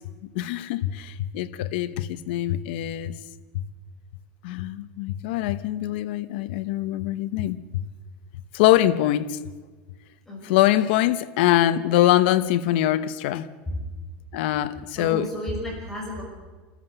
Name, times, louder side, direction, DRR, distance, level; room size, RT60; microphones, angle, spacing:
voice 1, 0.3-3.1 3.5-3.6 4.4-7.8 8.5-9.4 10.4-13.5 14.3-15.3, left 13 dB, 65° left, 1.1 m, -23 dB
voice 2, 10.3-10.6 13.7-13.8 15.0-16.2, equal, 5° left, 6.1 m, -32 dB
28.5 x 13.5 x 8.2 m
supercardioid pair, 155°, 6 cm